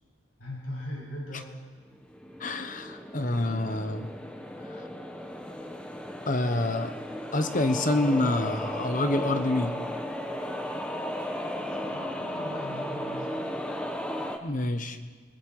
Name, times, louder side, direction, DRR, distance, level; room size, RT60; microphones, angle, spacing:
voice 1, 0.4-1.5 11.6-13.6, left 1 dB, 90° left, -3 dB, 7.4 m, -39 dB
sound 1, 1.9-14.4, left 1 dB, 5° left, 1.0 m, -35 dB
voice 2, 2.4-4.1 6.3-6.9 7.3-9.8 14.4-15.0, left 2 dB, 40° left, 9 dB, 1.1 m, -27 dB
26.5 x 20.0 x 4.9 m, 1.5 s
head